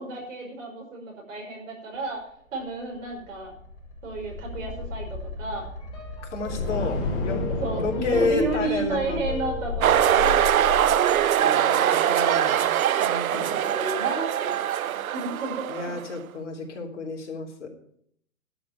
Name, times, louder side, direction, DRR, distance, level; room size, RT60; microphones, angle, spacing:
voice 1, 0.0-2.2 2.5-3.5 4.0-5.7 6.4-6.9 7.6-11.9 13.3-15.9, right 3 dB, 65° right, 1 dB, 5.5 m, -32 dB
sound 1, 2.9-11.3, left 3 dB, 40° left, 4.0 m, -32 dB
sound 2, 5.8-11.6, left 8 dB, 10° left, 2.6 m, -41 dB
voice 2, 6.3-7.4 7.7-9.2 11.4-12.7 13.0-13.6 15.7-17.7, left 4 dB, 60° left, 2 dB, 3.3 m, -30 dB
sound 3, 9.8-16.1, right 11 dB, 90° right, 0.5 m, -22 dB
11.5 x 6.4 x 8.8 m, 0.68 s
hypercardioid pair, 140°, 41 cm